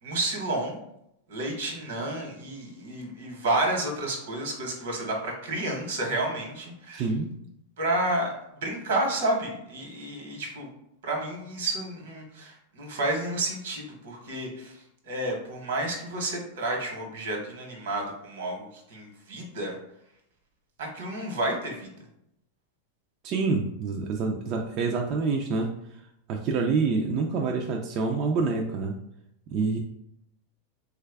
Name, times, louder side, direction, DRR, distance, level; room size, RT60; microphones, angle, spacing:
voice 1, 0.0-0.8 1.3-7.0 7.8-10.7 11.0-19.7 20.8-21.9, right 2 dB, 80° right, 1 dB, 1.1 m, -30 dB
voice 2, 6.9-7.3 23.2-25.7 26.3-29.0 29.5-29.8, right 4 dB, 40° right, 1 dB, 0.3 m, -27 dB
3.2 x 2.3 x 3.4 m, 0.79 s
supercardioid pair, 135°, 0 cm